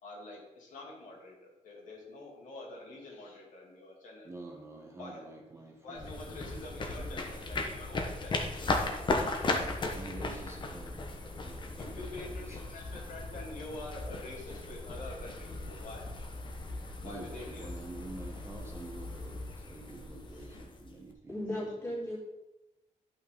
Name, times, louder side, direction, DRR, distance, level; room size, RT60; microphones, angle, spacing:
voice 1, 0.0-4.3 5.0-5.3 5.8-8.5 11.7-16.1 17.0-17.9 20.3-20.5, left 2 dB, 80° left, -2 dB, 2.5 m, -46 dB
voice 2, 4.2-7.3 9.6-12.6 17.0-21.6, right 2 dB, 20° right, 2 dB, 1.0 m, -48 dB
sound 1, 6.0-21.1, left 2 dB, 40° left, 1.1 m, -37 dB
voice 3, 21.3-22.2, left 1 dB, 20° left, -6 dB, 3.1 m, -36 dB
11.0 x 5.7 x 3.9 m, 1.0 s
wide cardioid pair, 155°, 13 cm